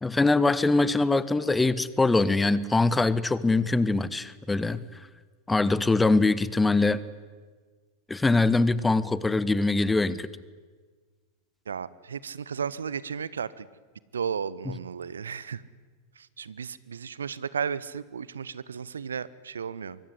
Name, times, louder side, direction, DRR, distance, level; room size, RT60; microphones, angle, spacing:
voice 1, 0.0-4.8 5.5-7.0 8.1-10.3, left 3 dB, 10° left, 18 dB, 1.1 m, -23 dB
voice 2, 11.7-13.7 14.1-15.6 16.2-20.0, right 6 dB, 70° right, 19 dB, 0.9 m, -34 dB
24.5 x 23.5 x 9.7 m, 1.4 s
figure-of-eight pair, 90°, 0 cm